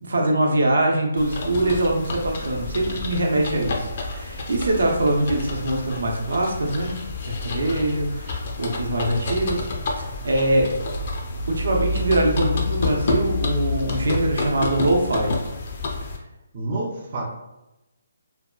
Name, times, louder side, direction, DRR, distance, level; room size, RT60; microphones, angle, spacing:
voice 1, 0.0-6.9 7.2-9.7 10.0-10.7 11.5-15.4, right 1 dB, 80° right, 0 dB, 0.7 m, -23 dB
sound 1, 1.2-16.2, left 3 dB, 40° left, 0.4 m, -29 dB
voice 2, 16.5-17.2, right 2 dB, 30° right, -3 dB, 0.4 m, -28 dB
2.7 x 2.2 x 2.3 m, 0.95 s
hypercardioid pair, 170°, 0 cm